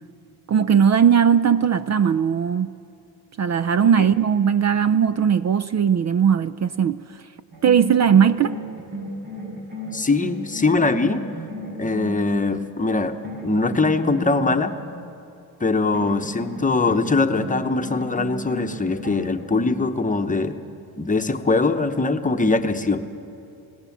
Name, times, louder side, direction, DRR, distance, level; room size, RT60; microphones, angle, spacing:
voice 1, 0.5-2.7 3.4-7.0 7.6-8.6, right 7 dB, 45° right, 14 dB, 0.4 m, -18 dB
sound 1, 7.5-12.7 13.2-14.8 15.9-19.8, right 1 dB, 75° right, 7.3 m, -34 dB
voice 2, 9.9-11.2 11.8-13.2 13.4-14.7 15.6-20.6 21.0-23.0, left 3 dB, 20° left, 7 dB, 0.9 m, -22 dB
26.5 x 18.0 x 7.2 m, 2.8 s
wide cardioid pair, 150°, 38 cm